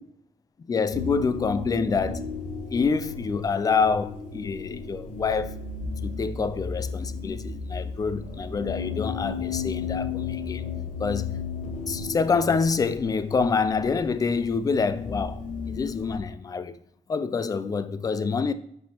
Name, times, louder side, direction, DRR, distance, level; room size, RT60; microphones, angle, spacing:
voice 1, 0.7-2.2 2.7-5.5 6.0-10.6 11.0-11.3 11.9-15.4 15.7-16.8 17.1-18.5, left 5 dB, 25° left, 0.4 m, -26 dB
sound 1, 0.9-16.2, left 5 dB, 65° left, 1.4 m, -34 dB
7.5 x 5.3 x 2.9 m
cardioid pair, 130°, 14 cm